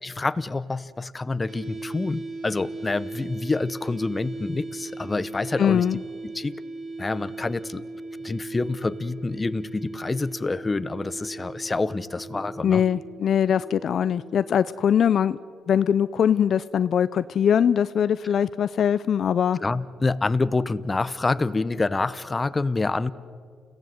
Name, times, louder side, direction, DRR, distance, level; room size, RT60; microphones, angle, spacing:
voice 1, 0.0-5.9 6.2-6.5 7.0-7.8 8.2-12.8 19.6-23.1, left 3 dB, 25° left, 15 dB, 0.9 m, -27 dB
sound 1, 1.5-15.4, right 3 dB, 45° right, 4.7 m, -38 dB
voice 2, 5.6-6.0 12.6-15.4 15.7-19.6, left 8 dB, 60° left, 15 dB, 0.5 m, -22 dB
29.5 x 17.0 x 8.0 m, 2.2 s
cardioid pair, 90°, 0 cm